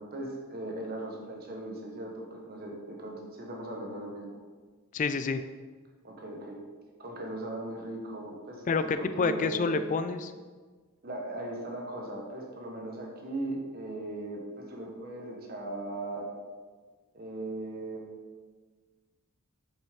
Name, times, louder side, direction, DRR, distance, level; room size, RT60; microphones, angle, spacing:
voice 1, 0.0-4.4 6.0-6.6 7.0-9.7 11.0-16.3 17.1-18.1, right 1 dB, 45° right, 0 dB, 1.1 m, -38 dB
voice 2, 4.9-5.4 8.7-10.3, left 4 dB, 35° left, 10 dB, 0.3 m, -28 dB
7.6 x 5.2 x 3.6 m, 1.4 s
head